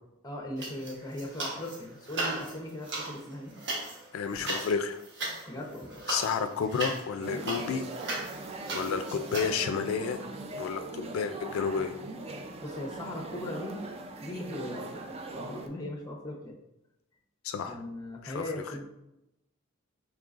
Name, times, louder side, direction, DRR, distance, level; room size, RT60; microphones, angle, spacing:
voice 1, 0.2-3.5 5.4-6.0 12.6-13.8 14.2-15.1 15.3-16.6 17.7-18.9, left 1 dB, 20° left, 1 dB, 0.7 m, -39 dB
sound 1, 0.6-1.8 2.1-9.5, right 2 dB, 60° right, 0.9 m, -37 dB
voice 2, 4.1-5.0 6.1-7.9 8.7-10.2 10.6-11.9 17.4-17.8 18.2-18.4, left 6 dB, 80° left, 7 dB, 0.3 m, -31 dB
sound 2, 7.2-15.7, right 2 dB, 30° right, 0.4 m, -40 dB
5.1 x 3.2 x 2.4 m, 0.88 s
head